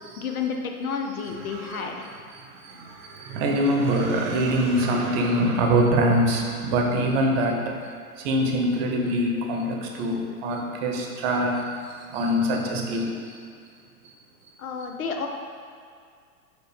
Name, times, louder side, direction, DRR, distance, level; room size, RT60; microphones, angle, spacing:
voice 1, 0.2-1.9 14.6-15.3, left 5 dB, 70° left, 3 dB, 0.8 m, -30 dB
voice 2, 1.4-1.9 3.2-7.6 8.2-11.6 12.1-13.1, right 1 dB, 40° right, 2 dB, 0.9 m, -23 dB
5.2 x 4.5 x 4.7 m, 2.2 s
figure-of-eight pair, 95°, 45 cm